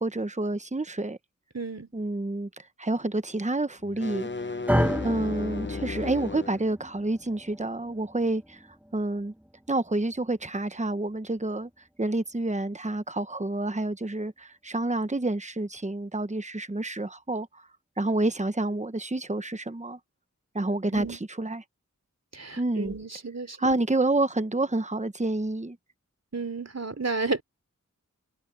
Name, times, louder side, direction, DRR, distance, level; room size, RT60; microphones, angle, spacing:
voice 1, 0.0-1.2 1.9-4.3 5.0-8.6 8.9-9.3 9.7-11.7 12.0-17.6 18.0-20.0 20.5-21.6 22.6-22.9 23.6-25.8, right 2 dB, 20° right, 1.0 m, -28 dB
voice 2, 1.5-1.9 20.9-21.2 22.3-23.8 26.3-27.4, right 3 dB, 55° right, 3.1 m, -32 dB
sound 1, 3.8-6.6, left 3 dB, 35° left, 0.9 m, -34 dB
sound 2, 4.7-12.9, equal, 5° right, 1.9 m, -34 dB
wide cardioid pair, 55°, 31 cm